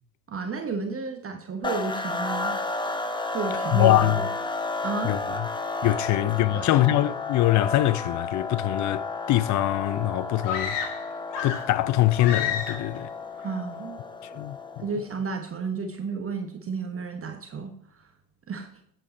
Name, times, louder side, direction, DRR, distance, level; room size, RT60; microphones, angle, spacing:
voice 1, 0.3-2.5 3.3-4.3 4.8-5.2 6.1-6.3 6.5-6.7 13.4-14.0 14.3-14.4 14.8-17.7 18.0-18.1 18.5-18.7, right 4 dB, 30° right, 1.2 m, -32 dB
sound 1, 1.6-15.0, left 3 dB, 10° left, 1.0 m, -32 dB
voice 2, 3.7-4.2 5.0-5.2 5.8-10.8 11.4-13.1 14.4-14.6, left 15 dB, 40° left, 0.5 m, -23 dB
sound 2, 10.4-11.8 12.2-13.0, left 7 dB, 65° left, 1.7 m, -31 dB
8.4 x 7.9 x 4.2 m
figure-of-eight pair, 60°, 46 cm